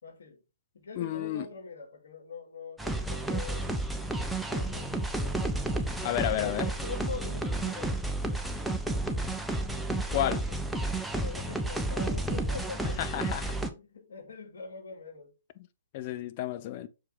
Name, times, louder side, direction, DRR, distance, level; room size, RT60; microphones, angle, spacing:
voice 1, 0.0-0.4 0.7-3.8 4.2-5.5 6.3-8.0 11.1-13.3 13.7-15.3, left 5 dB, 70° left, 2.4 m, -43 dB
voice 2, 1.0-1.5 6.0-6.7 10.1-10.4 13.0-13.5 15.9-16.9, left 13 dB, 40° left, 0.8 m, -31 dB
sound 1, 2.8-13.7, right 2 dB, 5° right, 0.8 m, -31 dB
6.7 x 4.6 x 3.7 m
hypercardioid pair, 130°, 0 cm